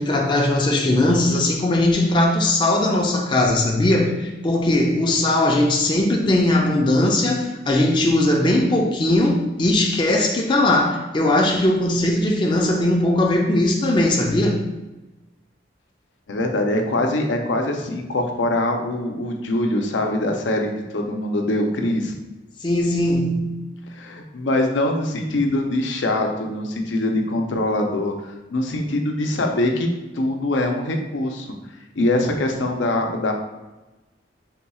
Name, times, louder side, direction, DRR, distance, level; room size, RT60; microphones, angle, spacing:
voice 1, 0.0-14.6 22.6-23.5, left 1 dB, 25° left, 0 dB, 0.4 m, -19 dB
voice 2, 16.3-22.1 23.9-28.1 28.5-29.9 30.1-31.5 32.0-33.3, left 1 dB, 85° left, 2 dB, 0.6 m, -23 dB
3.6 x 2.3 x 4.1 m, 1.1 s
head